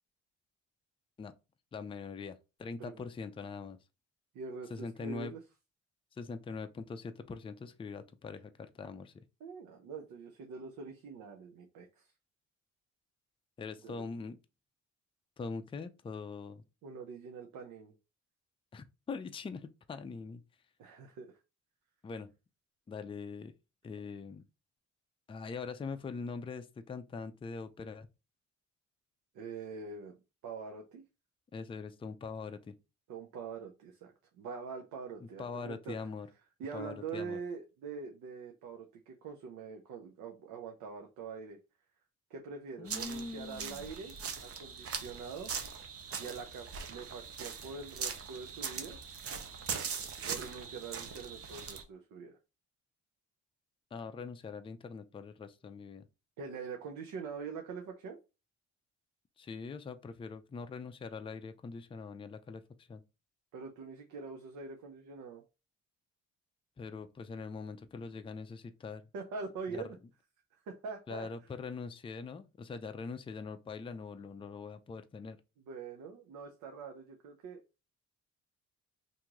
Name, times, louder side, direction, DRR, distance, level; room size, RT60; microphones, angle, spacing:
voice 1, 1.7-3.8 4.7-5.3 6.1-9.2 13.6-14.4 15.4-16.6 18.7-20.4 22.0-22.3 22.9-23.5 23.8-24.4 25.3-28.1 31.5-32.7 35.2-36.3 36.7-37.4 42.8-43.9 53.9-56.1 59.4-62.6 62.9-63.0 66.8-69.0 69.7-70.0 71.1-75.4, left 4 dB, 20° left, 0.4 m, -42 dB
voice 2, 4.3-5.4 9.4-12.0 13.8-14.0 16.8-17.9 20.8-21.3 29.3-30.2 30.4-31.0 33.1-36.0 36.6-41.6 42.3-44.1 44.4-45.5 46.2-49.0 50.3-52.4 56.4-58.2 63.5-65.4 69.1-70.0 70.7-71.3 75.7-77.6, right 5 dB, 85° right, 0.7 m, -44 dB
sound 1, 42.9-51.8, right 6 dB, 50° right, 0.7 m, -41 dB
2.9 x 2.6 x 3.5 m
cardioid pair, 90°, 30 cm